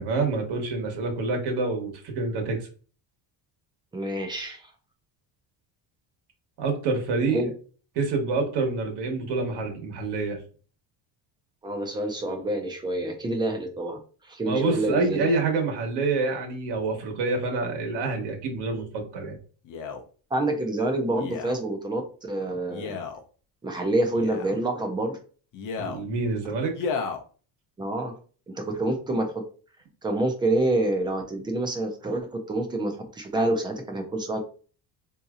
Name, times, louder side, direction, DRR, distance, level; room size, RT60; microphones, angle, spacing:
voice 1, 0.0-2.6 6.6-7.4 7.9-10.4 14.4-19.4 25.8-26.7, right 3 dB, 60° right, 2 dB, 1.2 m, -27 dB
voice 2, 3.9-4.7 7.3-7.5 11.6-14.0 14.3-15.3 20.3-22.9 23.6-25.2 27.8-28.2 28.5-29.3 30.0-34.4, right 1 dB, 10° right, 4 dB, 0.3 m, -27 dB
Male speech man speaking, 19.6-20.0 21.2-21.6 22.7-23.2 24.1-24.6 25.5-26.0 26.7-27.2 27.9-28.0, left 5 dB, 45° left, 0.6 m, -33 dB
3.8 x 2.8 x 2.4 m, 0.39 s
cardioid pair, 170°, 44 cm